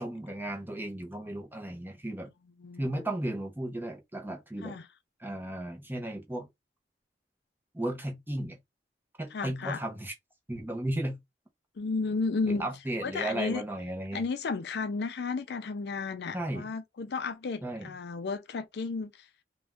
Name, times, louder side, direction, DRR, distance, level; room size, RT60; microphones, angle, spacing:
voice 1, 0.0-2.3 2.8-4.8 5.2-6.5 7.7-8.6 9.2-10.1 10.5-11.2 12.5-14.2 16.3-16.7 17.6-17.9, right 1 dB, 10° right, 0.7 m, -35 dB
voice 2, 2.6-3.1 4.6-4.9 9.3-9.8 11.8-12.7 13.0-13.6 14.1-19.3, left 4 dB, 65° left, 0.4 m, -33 dB
2.6 x 2.2 x 3.4 m
head